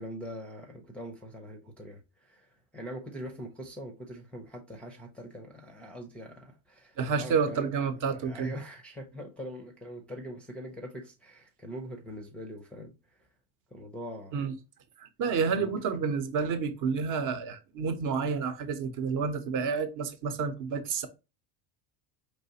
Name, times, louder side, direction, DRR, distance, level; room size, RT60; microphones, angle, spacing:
voice 1, 0.0-7.7 8.1-12.9 13.7-14.4 15.6-15.7, equal, 5° left, 0.5 m, -43 dB
voice 2, 7.0-8.5 14.3-14.5 15.0-21.1, right 5 dB, 45° right, 0.9 m, -30 dB
4.6 x 3.2 x 2.8 m
cardioid pair, 155°, 43 cm